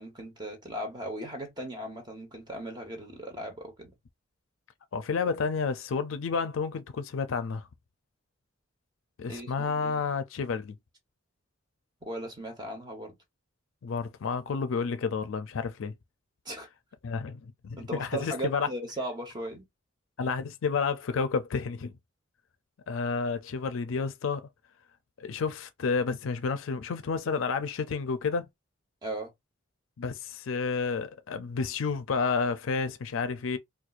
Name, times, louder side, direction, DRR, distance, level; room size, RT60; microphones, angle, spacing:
voice 1, 0.0-3.9 9.3-10.0 12.0-13.1 16.4-16.7 17.8-19.7 29.0-29.3, right 1 dB, 20° right, 1.1 m, -37 dB
voice 2, 4.9-7.7 9.2-10.8 13.8-15.9 17.0-18.7 20.2-21.9 22.9-24.5 25.2-28.5 30.0-33.6, left 5 dB, 70° left, 0.4 m, -30 dB
4.3 x 2.3 x 2.4 m
head